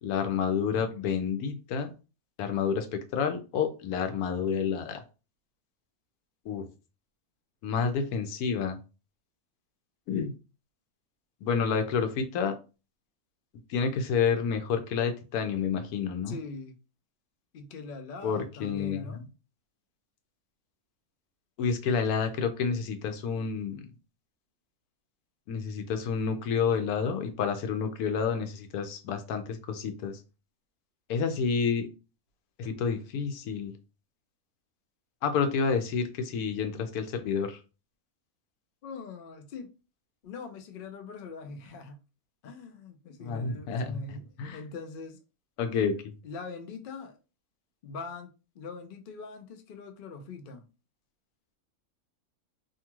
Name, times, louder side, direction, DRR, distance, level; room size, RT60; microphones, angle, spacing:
voice 1, 0.0-1.9 2.4-5.0 6.5-6.7 7.6-8.8 10.1-10.3 11.4-12.6 13.7-16.4 18.2-19.2 21.6-23.9 25.5-30.2 31.1-31.9 32.6-33.7 35.2-37.6 43.2-44.0 44.4-44.6 45.6-46.1, left 6 dB, 90° left, 1.1 m, -29 dB
voice 2, 16.3-16.8 17.5-19.2 38.8-39.7 40.2-42.0 42.4-45.2 46.2-47.2 47.8-48.3 48.5-50.6, left 4 dB, 65° left, 0.5 m, -42 dB
2.7 x 2.3 x 2.9 m
omnidirectional pair, 1.5 m